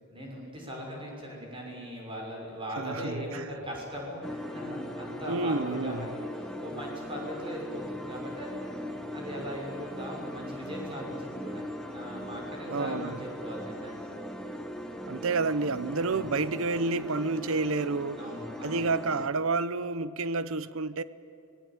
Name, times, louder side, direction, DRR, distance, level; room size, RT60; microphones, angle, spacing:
voice 1, 0.1-8.7 9.1-14.0 15.9-16.3 18.1-18.9, equal, 25° right, 6.1 m, -39 dB
voice 2, 2.8-3.6 5.3-6.1 12.7-13.2 15.1-18.3 18.6-21.0, right 3 dB, 65° right, 0.8 m, -30 dB
sound 1, 4.2-19.3, equal, 5° left, 1.6 m, -39 dB
25.0 x 18.5 x 9.1 m
head